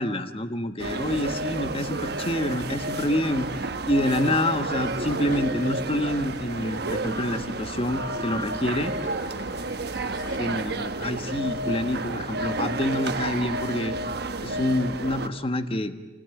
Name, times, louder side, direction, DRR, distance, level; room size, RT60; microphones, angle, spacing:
voice 1, 0.0-8.9 10.4-14.0 14.4-15.9, left 1 dB, 30° left, 8 dB, 1.4 m, -27 dB
sound 1, 0.8-15.3, right 2 dB, 60° right, 1.3 m, -31 dB
sound 2, 2.4-2.8 4.0-7.4 8.6-10.4, left 3 dB, 85° left, 2.4 m, -47 dB
29.0 x 17.5 x 9.3 m, 1.2 s
head